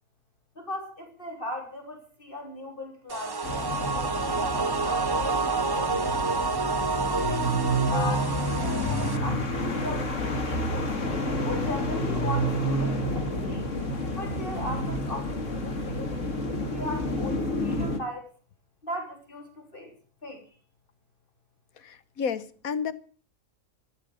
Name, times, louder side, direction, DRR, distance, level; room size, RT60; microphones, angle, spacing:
voice 1, 0.6-3.7 4.3-6.5 7.0-9.5 9.7-10.9 11.4-13.7 14.1-16.2 16.7-18.3 18.8-19.9 20.2-20.6, left 1 dB, 40° left, 4.0 m, -38 dB
sound 1, 3.1-9.2, right 4 dB, 25° right, 0.6 m, -28 dB
sound 2, 3.4-18.0, equal, 65° left, 2.6 m, -29 dB
voice 2, 21.8-22.9, left 6 dB, 90° left, 1.6 m, -31 dB
15.0 x 12.5 x 6.8 m
omnidirectional pair, 1.4 m